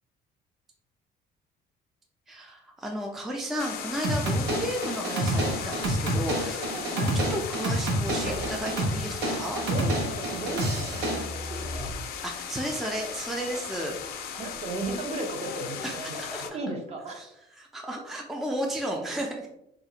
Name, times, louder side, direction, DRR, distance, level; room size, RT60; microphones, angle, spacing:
voice 1, 2.3-6.7 7.0-9.6 12.2-14.0 15.8-16.4 17.1-17.3 17.6-19.5, equal, ahead, 0 dB, 0.4 m, -33 dB
sound 1, 3.6-16.5, left 8 dB, 65° left, 0.4 m, -37 dB
sound 2, 4.0-11.2, right 1 dB, 85° right, 0.8 m, -28 dB
sound 3, 5.8-12.6 13.1-14.1 14.4-14.9, equal, 60° right, 1.4 m, -41 dB
voice 2, 6.7-7.2 9.7-11.9 13.5-13.6 14.3-17.3 17.9-18.0, right 2 dB, 40° right, 3 dB, 0.6 m, -36 dB
3.0 x 2.5 x 2.7 m, 0.79 s
cardioid pair, 110°, 17 cm